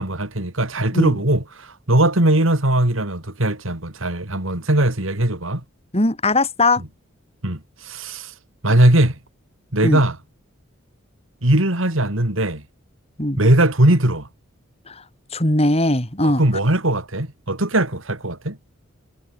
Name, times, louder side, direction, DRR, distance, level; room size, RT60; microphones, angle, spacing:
voice 1, 0.0-5.6 7.4-8.3 8.6-9.2 9.7-10.2 11.4-12.6 13.4-14.3 16.2-18.6, right 1 dB, 75° right, 3.4 m, -19 dB
voice 2, 5.9-6.8 9.8-10.0 13.2-13.4 14.9-15.0 15.3-16.4, left 2 dB, 30° left, 4.2 m, -19 dB
head